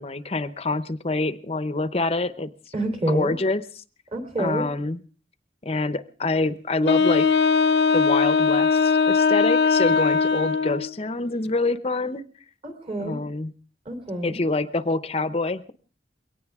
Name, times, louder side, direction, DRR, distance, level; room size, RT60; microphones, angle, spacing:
voice 1, 0.0-2.5 3.1-3.6 4.4-5.0 5.6-7.4 7.9-12.2 13.0-13.5 14.2-15.7, left 2 dB, 35° left, 13 dB, 0.7 m, -26 dB
voice 2, 2.7-3.3 4.1-4.7 12.6-13.2 13.8-14.4, right 1 dB, 35° right, 6 dB, 3.3 m, -27 dB
Wind instrument woodwind instrument, 6.8-10.9, left 5 dB, 75° left, 0.8 m, -20 dB
22.0 x 18.0 x 3.6 m, 0.39 s
head